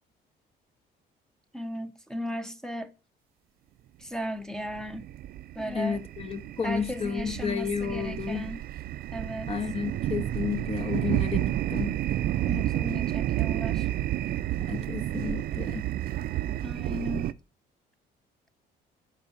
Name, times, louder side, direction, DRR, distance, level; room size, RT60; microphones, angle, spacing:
voice 1, 1.5-2.9 4.0-5.1 5.5-6.0 6.6-8.7 9.1-9.5 12.5-13.9 16.6-17.4, equal, 5° left, 0.9 m, -36 dB
sound 1, 4.6-17.3, right 13 dB, 60° right, 0.5 m, -31 dB
voice 2, 5.6-8.5 9.5-12.0 14.7-15.9, left 6 dB, 35° left, 1.4 m, -32 dB
11.5 x 4.8 x 8.6 m
cardioid pair, 110°, 17 cm